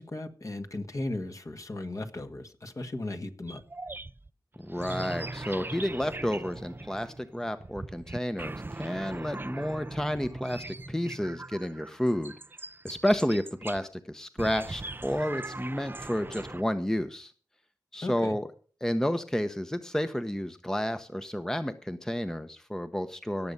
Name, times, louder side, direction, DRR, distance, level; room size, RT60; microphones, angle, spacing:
voice 1, 0.0-3.6 18.0-18.3, left 2 dB, 45° left, 6 dB, 1.8 m, -36 dB
sound 1, 3.5-13.9 14.4-16.6, right 2 dB, 25° right, 0.5 m, -41 dB
voice 2, 4.6-12.3 12.8-17.3 17.9-18.5 18.8-23.5, equal, 5° left, 9 dB, 0.9 m, -31 dB
17.0 x 7.0 x 5.4 m, 0.40 s
cardioid pair, 50°, 8 cm